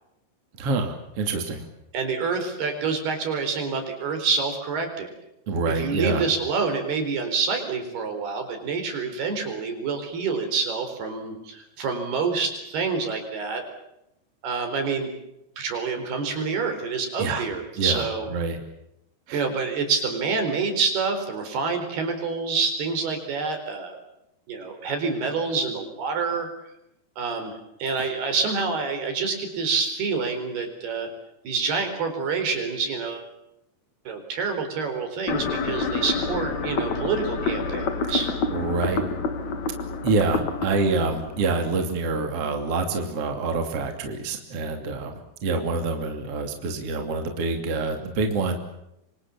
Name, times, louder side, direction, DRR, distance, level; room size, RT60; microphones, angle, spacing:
voice 1, 0.6-1.7 5.5-6.2 17.2-17.5 17.8-18.6 19.3-19.4 28.0-28.1 38.1-38.2 38.5-39.1 40.0-48.6, right 3 dB, 40° right, 5 dB, 3.4 m, -26 dB
voice 2, 1.9-5.1 5.7-13.6 14.4-15.1 15.6-18.3 19.3-24.0 24.5-26.5 27.2-31.1 31.4-33.3 34.1-38.3, right 4 dB, 75° right, 6 dB, 6.3 m, -27 dB
sound 1, 35.3-42.3, left 4 dB, 50° left, 3.1 m, -29 dB
27.0 x 25.5 x 7.3 m, 0.82 s
omnidirectional pair, 4.6 m